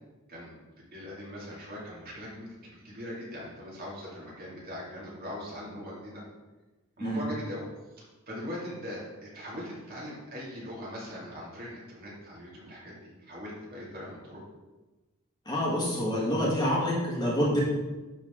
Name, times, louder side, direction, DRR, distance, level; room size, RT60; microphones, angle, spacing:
voice 1, 0.3-6.2 7.0-7.7 8.3-14.4, left 1 dB, 45° right, -5 dB, 2.2 m, -41 dB
voice 2, 15.4-17.6, equal, 20° left, -5 dB, 1.6 m, -27 dB
11.0 x 3.9 x 3.6 m, 1.1 s
head